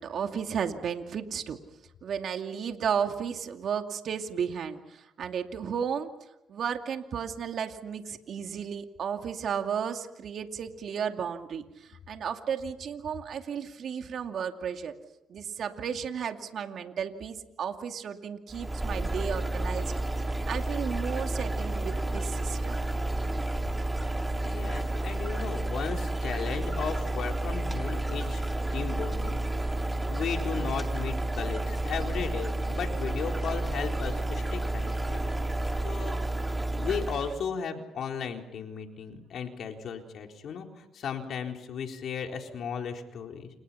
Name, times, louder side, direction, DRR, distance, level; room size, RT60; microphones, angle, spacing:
voice 1, 0.0-1.6 2.0-6.1 6.5-14.9 15.3-19.9 20.5-22.8, right 7 dB, 60° right, 5 dB, 2.5 m, -33 dB
sound 1, 18.5-37.4, right 1 dB, 15° right, 2.3 m, -31 dB
voice 2, 24.4-28.4 28.7-29.4 29.9-35.3 35.8-36.2 36.7-43.5, left 6 dB, 65° left, 3 dB, 4.1 m, -35 dB
29.5 x 28.5 x 5.8 m, 0.90 s
cardioid pair, 85°, 0 cm